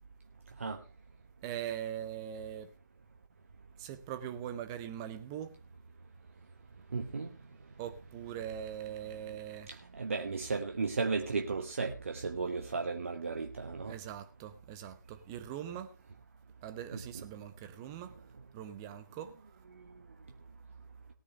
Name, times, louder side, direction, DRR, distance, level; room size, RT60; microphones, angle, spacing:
voice 1, 1.4-2.8 3.8-5.5 7.8-9.7 13.9-15.9 16.6-18.2 18.5-19.4, right 10 dB, 10° right, 0.7 m, -41 dB
voice 2, 6.9-7.3 9.7-13.9 16.9-17.2 19.7-19.8, right 4 dB, 40° right, 1.2 m, -35 dB
18.0 x 9.8 x 3.4 m
figure-of-eight pair, 155°, 11 cm